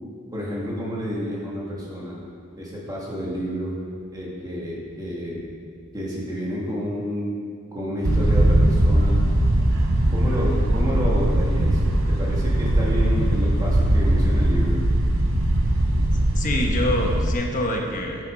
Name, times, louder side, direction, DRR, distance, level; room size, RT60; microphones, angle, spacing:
voice 1, 0.3-2.2 2.6-3.7 4.1-5.5 5.9-7.3 7.7-9.2 10.1-11.8 12.1-14.8, equal, 15° right, -5 dB, 1.9 m, -30 dB
sound 1, 8.0-17.3, right 1 dB, 65° right, 0.9 m, -20 dB
voice 2, 16.3-18.3, left 1 dB, 35° left, 1 dB, 1.1 m, -25 dB
8.8 x 7.0 x 5.0 m, 2.2 s
head